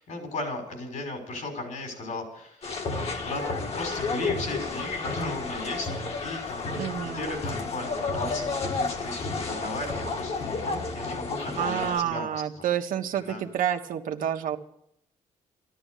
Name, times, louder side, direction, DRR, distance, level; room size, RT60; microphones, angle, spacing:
voice 1, 0.0-2.6 3.2-3.4 3.7-5.9 6.2-6.7 7.0-12.7 13.3-13.4, left 2 dB, 70° left, 4 dB, 5.7 m, -35 dB
sound 1, 2.6-12.0, left 3 dB, 50° left, 1.9 m, -31 dB
voice 2, 6.7-7.2 11.6-14.6, right 10 dB, 90° right, 5 dB, 1.5 m, -29 dB
14.0 x 11.5 x 8.4 m, 0.73 s
cardioid pair, 150°, 14 cm